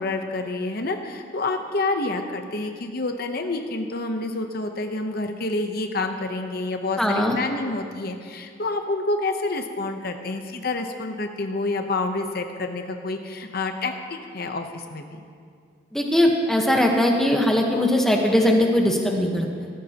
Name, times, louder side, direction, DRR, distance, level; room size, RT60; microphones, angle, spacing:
voice 1, 0.0-15.2, left 2 dB, 50° left, 5 dB, 0.8 m, -28 dB
voice 2, 7.0-7.4 15.9-19.7, left 1 dB, ahead, 1 dB, 1.1 m, -20 dB
16.0 x 14.5 x 2.9 m, 2.2 s
head